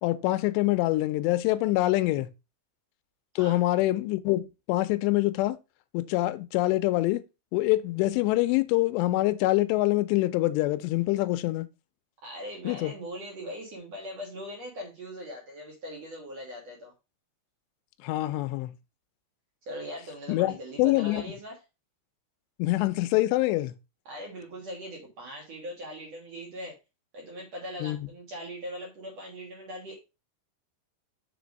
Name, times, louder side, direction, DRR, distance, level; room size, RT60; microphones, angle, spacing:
voice 1, 0.0-2.3 3.4-5.6 5.9-7.2 7.5-11.7 12.7-12.9 18.0-18.7 20.3-21.2 22.6-23.7 27.8-28.0, left 18 dB, 85° left, 2.8 m, -25 dB
voice 2, 12.2-16.9 19.7-21.6 24.0-26.8 27.1-30.0, equal, 60° right, 1.8 m, -40 dB
6.7 x 3.5 x 5.1 m
omnidirectional pair, 5.0 m